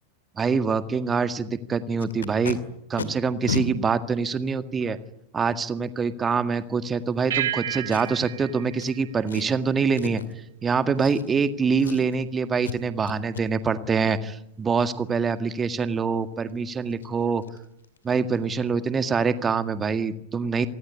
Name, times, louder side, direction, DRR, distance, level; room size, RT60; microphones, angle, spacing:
voice 1, 0.4-2.6 2.9-5.0 5.3-10.2 10.6-17.4 18.0-20.7, right 5 dB, 20° right, 11 dB, 1.9 m, -25 dB
Packing tape duct tape, 2.0-2.6 3.0-3.1 3.5-3.7 4.4-4.5 7.9-8.3 8.8-8.9 9.3-9.6 9.9-10.3 11.0-11.5 11.8-12.2 12.6-12.8 13.1-13.4 16.5-16.6 16.9-17.1 17.4-17.6 17.8-18.1 18.4-18.5, left 6 dB, 70° left, 2.3 m, -33 dB
sound 1, 7.3-10.1, right 12 dB, 60° right, 1.9 m, -32 dB
27.0 x 19.5 x 9.8 m, 0.78 s
figure-of-eight pair, 90°, 0 cm